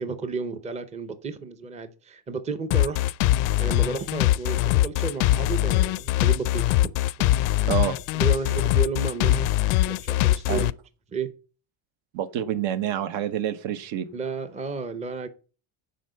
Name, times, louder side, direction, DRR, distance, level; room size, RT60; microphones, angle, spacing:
voice 1, 0.0-3.1 3.6-6.7 7.2-7.3 8.1-9.5 9.9-10.7 11.1-11.3 14.1-15.3, right 4 dB, 15° right, 0.6 m, -32 dB
sound 1, 2.7-10.7, left 15 dB, 90° left, 0.6 m, -22 dB
voice 2, 7.7-8.0 10.5-10.6 12.1-14.1, right 10 dB, 65° right, 1.1 m, -27 dB
10.0 x 4.4 x 6.7 m
cardioid pair, 150°, 50 cm